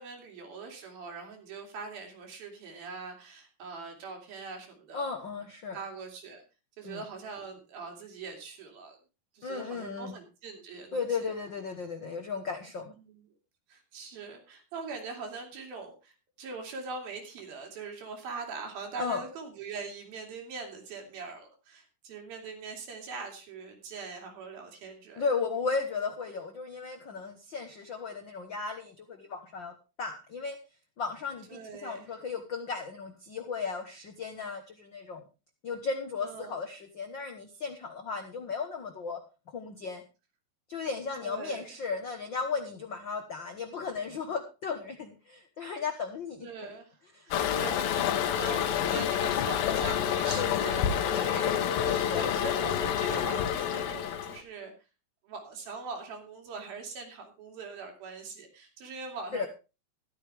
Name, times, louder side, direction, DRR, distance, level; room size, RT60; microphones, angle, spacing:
voice 1, 0.0-5.1 5.7-6.4 6.8-9.0 9.3-11.3 13.0-13.2 13.7-25.3 31.5-32.2 36.2-36.6 41.2-41.7 46.4-47.0 47.3-54.7 55.2-59.5, right 4 dB, 85° right, 2 dB, 4.5 m, -42 dB
voice 2, 4.9-5.8 6.8-7.0 9.4-10.2 10.9-13.0 19.0-19.2 25.2-29.7 30.0-30.6 31.0-35.2 35.6-39.2 39.5-40.0 40.7-46.5 47.1-47.6 50.4-51.6 51.9-52.3 59.3-59.5, left 5 dB, 70° left, 5 dB, 1.1 m, -35 dB
Toilet flush, 47.3-54.4, left 9 dB, 85° left, 3.0 m, -28 dB
13.0 x 12.5 x 3.4 m, 0.30 s
omnidirectional pair, 4.1 m